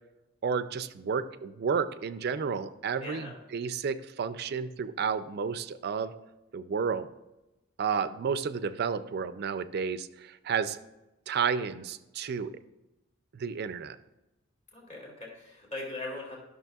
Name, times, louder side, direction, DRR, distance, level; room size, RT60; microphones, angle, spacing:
voice 1, 0.4-6.1 6.5-7.1 7.8-10.8 11.3-12.5 13.3-14.0, right 6 dB, 55° right, 13 dB, 0.4 m, -31 dB
voice 2, 3.0-3.4 14.7-16.4, left 2 dB, 35° left, -2 dB, 2.2 m, -40 dB
12.0 x 6.3 x 2.3 m, 0.99 s
head